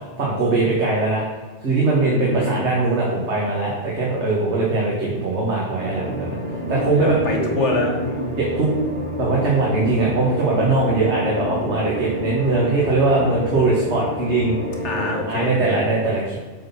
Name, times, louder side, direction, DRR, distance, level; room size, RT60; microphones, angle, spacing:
voice 1, 0.2-1.2 1.6-6.4 6.7-7.5 8.4-8.7 9.2-14.6 15.3-16.4, right 3 dB, 70° right, -4 dB, 1.8 m, -21 dB
voice 2, 2.0-2.6 6.7-8.4 14.8-15.9, left 2 dB, 75° left, 0 dB, 1.8 m, -25 dB
sound 1, 5.8-15.2, equal, 45° right, 1.6 m, -29 dB
7.3 x 4.3 x 5.6 m, 1.3 s
omnidirectional pair, 1.2 m